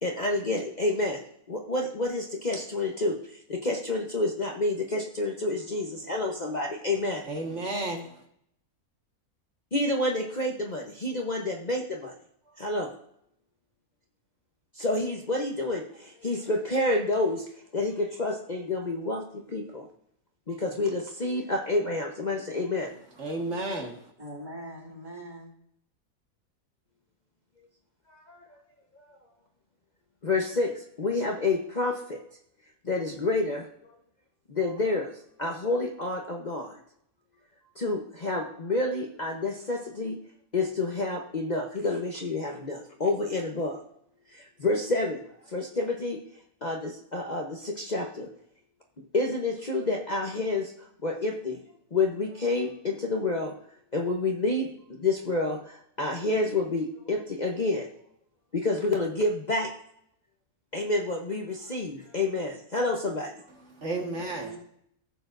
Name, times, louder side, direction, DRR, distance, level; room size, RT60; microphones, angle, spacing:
voice 1, 0.0-1.2 1.5-7.2 9.7-12.1 12.6-12.9 14.7-17.5 17.7-19.8 20.5-22.9 28.1-28.6 28.9-29.0 30.2-32.2 32.8-33.7 34.5-36.8 37.8-40.2 40.5-43.8 44.3-45.2 45.5-46.2 46.6-48.3 49.1-51.6 51.9-53.5 53.9-54.7 55.0-57.9 58.5-59.7 60.7-63.5, left 2 dB, 35° left, 1 dB, 1.0 m, -29 dB
voice 2, 7.3-8.2 23.2-24.1 63.7-64.5, right 2 dB, 55° right, 1 dB, 1.9 m, -32 dB
voice 3, 24.2-25.5 64.4-64.6, right 1 dB, 25° right, -1 dB, 2.1 m, -41 dB
15.5 x 6.9 x 2.6 m, 0.70 s
omnidirectional pair, 1.5 m